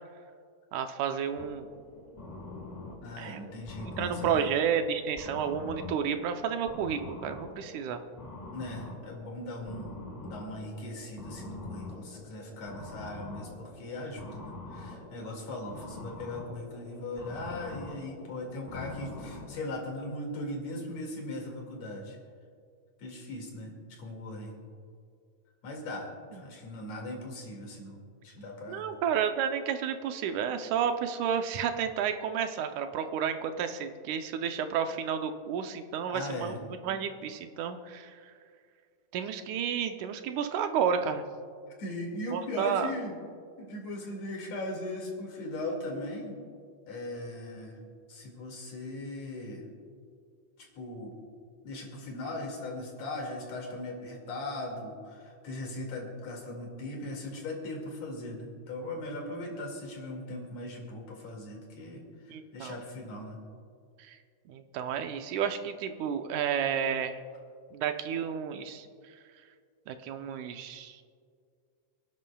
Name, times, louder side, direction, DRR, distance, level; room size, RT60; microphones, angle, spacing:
voice 1, 0.7-1.7 3.2-3.4 3.8-8.0 26.3-26.4 28.7-38.2 39.1-41.2 42.3-42.9 62.3-62.8 64.0-64.2 64.5-67.2 67.7-68.9 69.9-71.0, right 8 dB, 90° right, 7 dB, 2.2 m, -31 dB
sound 1, 1.4-19.7, left 3 dB, 30° left, 0.7 m, -45 dB
voice 2, 3.0-4.5 8.5-10.0 10.2-22.2 23.0-24.6 25.6-28.9 36.1-36.6 41.8-43.2 43.6-46.4 46.9-47.8 48.1-49.7 50.6-51.1 51.6-63.4, left 1 dB, 65° left, 0 dB, 3.3 m, -39 dB
28.5 x 11.0 x 2.3 m, 2.2 s
omnidirectional pair, 3.3 m